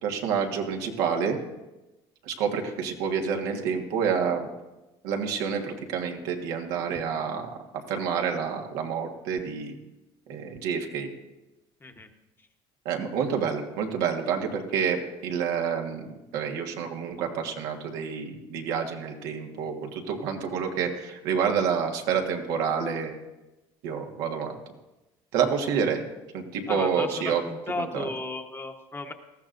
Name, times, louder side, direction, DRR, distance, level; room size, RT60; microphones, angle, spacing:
voice 1, 0.0-1.4 2.2-4.5 5.0-7.6 7.9-9.7 10.3-11.1 12.8-23.1 23.8-24.6 25.3-26.0 26.3-28.1, right 6 dB, 85° right, 2 dB, 1.6 m, -28 dB
voice 2, 26.7-29.1, left 3 dB, 20° left, 5 dB, 1.1 m, -35 dB
19.0 x 13.5 x 2.6 m, 1.0 s
supercardioid pair, 105°, 12 cm